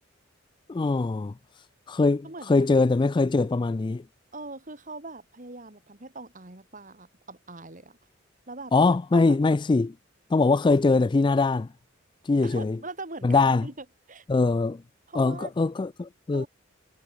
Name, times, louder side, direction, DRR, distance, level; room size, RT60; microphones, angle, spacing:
voice 1, 0.7-1.3 1.9-4.0 8.7-9.9 10.3-11.7 12.2-12.8 13.2-13.7 14.3-14.8 15.1-16.5, left 3 dB, 25° left, 0.3 m, -22 dB
voice 2, 2.2-2.6 4.3-8.0 8.5-8.7 9.1-9.4 12.4-14.2 15.1-15.5 16.3-16.5, right 3 dB, 40° right, 3.4 m, -41 dB
head